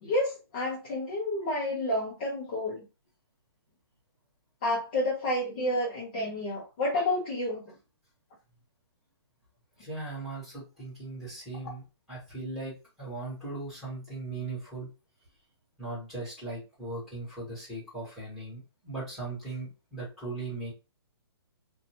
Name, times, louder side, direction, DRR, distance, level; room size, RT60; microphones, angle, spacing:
voice 1, 0.0-2.9 4.6-7.6, left 1 dB, 20° left, -5 dB, 0.5 m, -30 dB
voice 2, 9.8-14.9 15.8-20.7, right 2 dB, ahead, -9 dB, 1.2 m, -38 dB
2.6 x 2.1 x 2.8 m, 0.30 s
hypercardioid pair, 175°, 14 cm